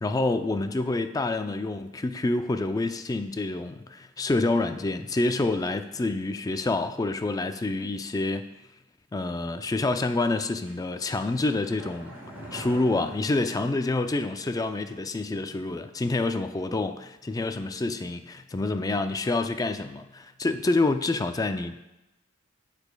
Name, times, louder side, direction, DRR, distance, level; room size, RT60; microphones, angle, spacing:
voice 1, 0.0-8.4 9.1-12.2 12.5-21.8, left 2 dB, 20° left, 8 dB, 0.3 m, -27 dB
sound 1, 10.7-14.4 14.6-14.7, right 1 dB, 10° right, 2.0 m, -45 dB
14.5 x 5.0 x 2.2 m, 0.96 s
head